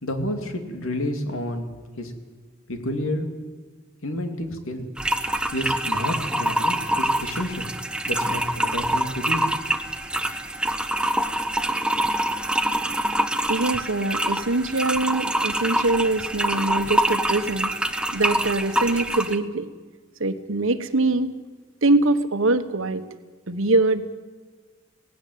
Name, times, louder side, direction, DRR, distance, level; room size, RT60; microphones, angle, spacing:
voice 1, 0.0-1.7 2.0-2.1 2.7-3.3 4.0-4.9 5.5-7.7 8.0-9.5, left 1 dB, 85° left, 6 dB, 2.6 m, -29 dB
sound 1, 5.0-19.4, right 1 dB, 5° right, 0.7 m, -25 dB
voice 2, 13.5-17.7 18.1-19.7 20.2-21.3 21.8-23.0 23.5-24.2, right 2 dB, 80° right, 11 dB, 1.3 m, -23 dB
18.0 x 16.0 x 9.4 m, 1.5 s
head